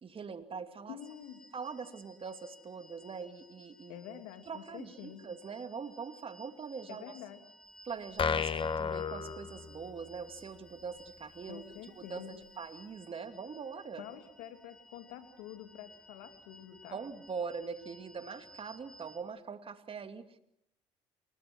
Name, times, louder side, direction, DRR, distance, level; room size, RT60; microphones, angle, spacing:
voice 1, 0.0-1.0 1.5-4.0 4.5-7.0 7.8-11.6 12.0-14.1 16.9-20.4, right 5 dB, 40° right, 9 dB, 2.5 m, -42 dB
voice 2, 0.9-1.4 3.9-5.2 6.9-7.4 11.5-12.4 14.0-17.0, left 10 dB, 80° left, 8 dB, 2.7 m, -47 dB
sound 1, 1.0-19.2, equal, 5° left, 5.7 m, -58 dB
sound 2, 8.2-10.1, left 6 dB, 35° left, 1.2 m, -33 dB
29.0 x 20.0 x 6.1 m, 0.71 s
supercardioid pair, 70°, 14 cm